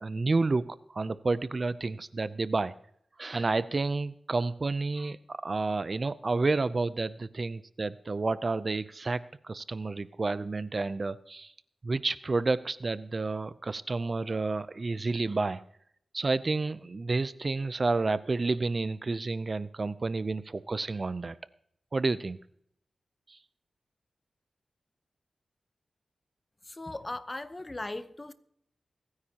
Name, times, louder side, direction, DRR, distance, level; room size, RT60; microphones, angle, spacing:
voice 1, 0.0-2.7 3.2-11.5 11.8-15.6 16.1-21.4 21.9-22.4 23.3-23.4, right 3 dB, 45° right, 0.5 m, -30 dB
voice 2, 26.8-28.3, left 2 dB, 25° left, 0.9 m, -38 dB
24.5 x 9.7 x 2.9 m
cardioid pair, 65°, 0 cm